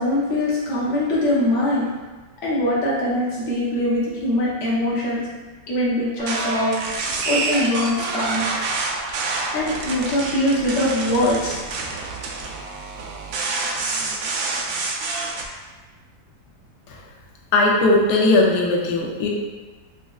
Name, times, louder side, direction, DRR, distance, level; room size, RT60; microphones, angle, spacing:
voice 1, 0.0-1.9 2.4-5.2 5.7-6.7 7.2-8.5 9.5-11.6, left 1 dB, 50° left, -6 dB, 1.1 m, -22 dB
sound 1, 6.2-15.4, right 3 dB, 90° right, 0.7 m, -27 dB
voice 2, 17.5-19.3, left 2 dB, 70° left, -2 dB, 1.1 m, -18 dB
5.2 x 2.3 x 2.3 m, 1.3 s
omnidirectional pair, 2.0 m